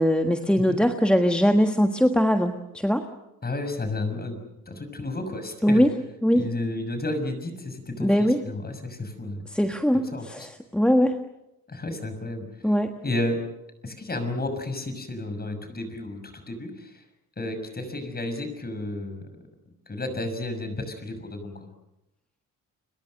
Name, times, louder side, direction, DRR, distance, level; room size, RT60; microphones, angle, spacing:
voice 1, 0.0-3.1 5.6-5.9 6.2-6.4 8.0-8.4 9.5-11.2 12.6-12.9, equal, 5° left, 5 dB, 1.5 m, -21 dB
voice 2, 3.4-4.4 4.7-5.9 6.3-9.5 10.1-10.5 11.7-12.5 13.0-13.4 13.8-17.0 17.4-19.2 19.9-21.7, left 2 dB, 25° left, 8 dB, 6.3 m, -32 dB
29.5 x 22.0 x 6.5 m, 0.91 s
cardioid pair, 90°, 35 cm